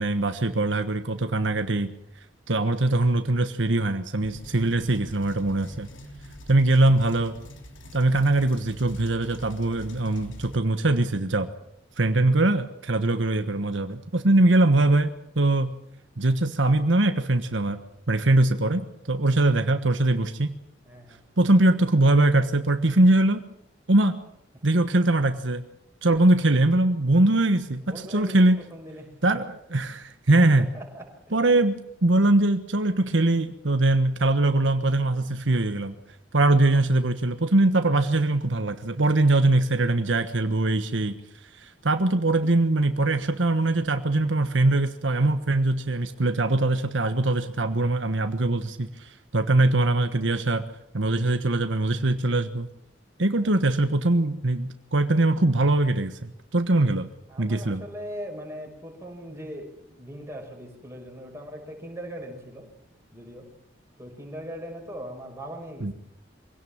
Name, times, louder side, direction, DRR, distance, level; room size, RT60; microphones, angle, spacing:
voice 1, 0.0-1.9 2.5-5.9 6.5-7.3 7.9-11.5 12.0-15.7 16.2-17.8 18.1-20.5 21.4-23.4 23.9-24.2 24.6-25.6 26.0-28.6 29.2-30.7 31.3-35.9 36.3-41.2 41.5-50.6 50.9-52.7 53.2-57.1 57.4-57.8 65.8-65.9, right 2 dB, 75° right, 8 dB, 1.3 m, -22 dB
sound 1, 4.2-10.6, equal, 85° left, 3.3 m, -44 dB
voice 2, 20.8-21.2 27.8-29.2 30.4-31.2 53.4-53.7 57.3-62.7 63.1-63.5 64.0-65.9, equal, 15° right, 1 dB, 5.9 m, -40 dB
24.0 x 17.5 x 7.3 m, 0.77 s
head